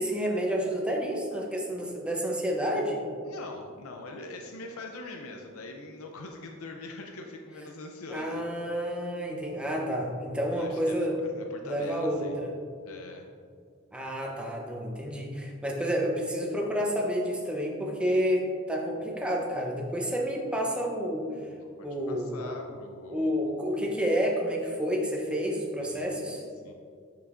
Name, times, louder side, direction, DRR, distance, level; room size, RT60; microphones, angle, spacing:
voice 1, 0.0-3.0 8.1-11.2 11.7-12.5 13.9-21.3 21.8-22.5 23.1-26.4, equal, 5° right, -1 dB, 0.7 m, -29 dB
voice 2, 3.2-8.4 10.5-12.4 12.8-13.3 21.4-23.4 25.8-26.7, left 2 dB, 90° left, 2 dB, 0.5 m, -43 dB
6.8 x 6.6 x 2.5 m, 2.2 s
head